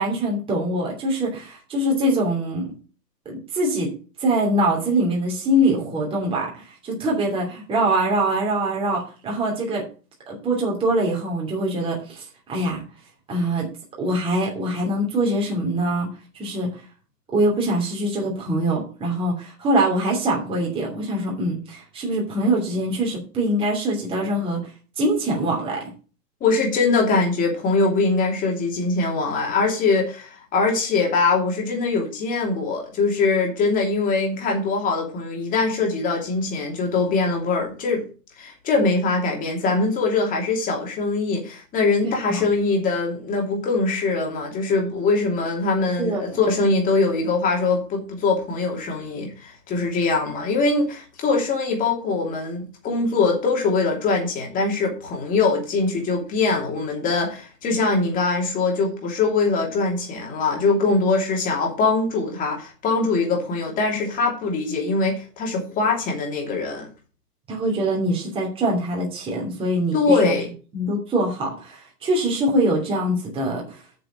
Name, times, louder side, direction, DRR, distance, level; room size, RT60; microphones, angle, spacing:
voice 1, 0.0-2.7 3.2-3.9 4.2-9.8 10.3-12.8 13.3-13.7 14.0-16.1 16.3-16.8 17.3-24.7 25.0-25.8 42.3-42.5 46.0-46.4 67.5-69.9 70.2-70.3 70.7-73.8, right 1 dB, 10° right, -2 dB, 2.8 m, -23 dB
voice 2, 26.4-38.0 38.4-66.9 69.9-70.5, left 3 dB, 15° left, 1 dB, 2.8 m, -22 dB
7.5 x 6.7 x 5.9 m, 0.35 s
hypercardioid pair, 150°, 48 cm